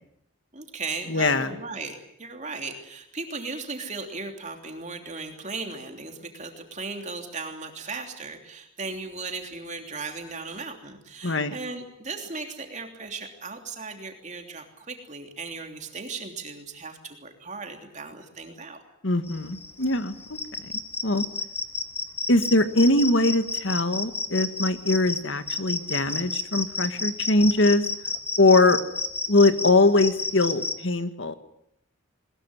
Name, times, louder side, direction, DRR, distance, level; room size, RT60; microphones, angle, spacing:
voice 1, 0.5-18.8, right 4 dB, 35° right, 4 dB, 3.2 m, -37 dB
voice 2, 1.1-1.5 11.2-11.6 19.0-20.4 21.0-21.2 22.3-27.8 28.4-28.8 29.3-31.3, left 2 dB, 60° left, 10 dB, 1.7 m, -22 dB
sound 1, 19.3-30.7, left 3 dB, 10° left, 1.6 m, -31 dB
21.5 x 21.0 x 9.8 m, 0.76 s
head